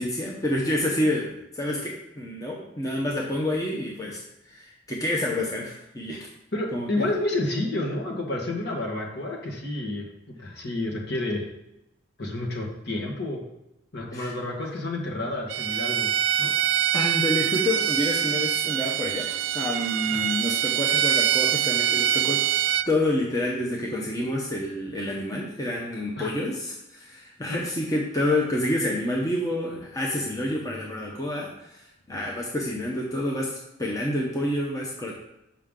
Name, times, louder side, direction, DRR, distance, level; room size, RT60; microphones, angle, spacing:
voice 1, 0.0-4.2 4.5-6.3 6.7-7.1 14.1-14.3 16.9-19.3 19.5-22.4 22.9-35.1, left 1 dB, 15° left, -2 dB, 0.8 m, -28 dB
voice 2, 6.5-11.4 12.2-13.4 13.9-16.1 16.4-16.5 20.1-20.3 26.2-26.3 27.5-27.6, left 2 dB, 55° left, -1 dB, 1.5 m, -30 dB
Bowed string instrument, 15.5-22.9, right 10 dB, 75° right, 0.3 m, -24 dB
6.8 x 5.7 x 3.7 m, 0.87 s
head